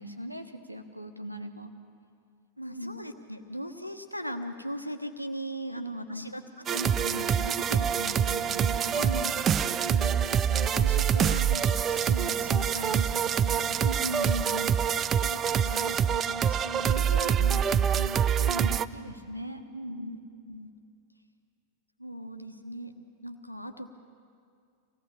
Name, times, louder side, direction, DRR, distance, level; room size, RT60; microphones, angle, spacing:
voice 1, 0.0-1.7 2.6-3.0 5.7-6.3 8.9-9.4 13.8-14.8 18.4-20.1, equal, 90° right, 5 dB, 1.3 m, -38 dB
voice 2, 2.6-9.0 9.8-13.8 14.9-18.3 20.0-20.2 20.5-20.7 22.0-22.9 23.2-23.9, equal, 90° left, 7 dB, 1.2 m, -39 dB
sound 1, 6.7-18.9, right 8 dB, 25° right, 0.5 m, -26 dB
25.5 x 18.0 x 7.4 m, 2.3 s
figure-of-eight pair, 90°, 0 cm